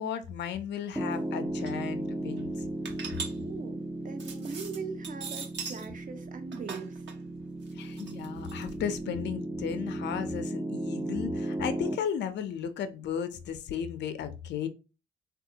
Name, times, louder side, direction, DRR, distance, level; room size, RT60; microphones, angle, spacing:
voice 1, 0.0-2.5 7.7-14.7, left 8 dB, 60° left, 0.5 m, -35 dB
Piano, 0.9-12.0, right 1 dB, 10° right, 0.4 m, -36 dB
sound 1, 1.1-1.2 1.4-1.8 2.3-5.9 6.2-8.9, right 5 dB, 60° right, 1.0 m, -41 dB
voice 2, 3.4-7.0, right 4 dB, 40° right, 0.7 m, -41 dB
3.5 x 2.3 x 2.7 m
cardioid pair, 90°, 20 cm